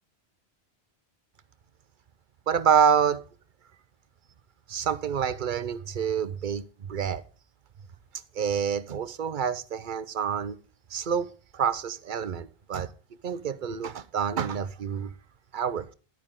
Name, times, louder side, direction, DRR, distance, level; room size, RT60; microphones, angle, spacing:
voice 1, 2.5-3.2 4.7-7.2 8.3-10.6 10.9-11.3 11.5-12.9 13.2-15.1 15.5-15.9, right 7 dB, 55° right, 0.8 m, -27 dB
11.0 x 9.4 x 3.6 m
omnidirectional pair, 1.1 m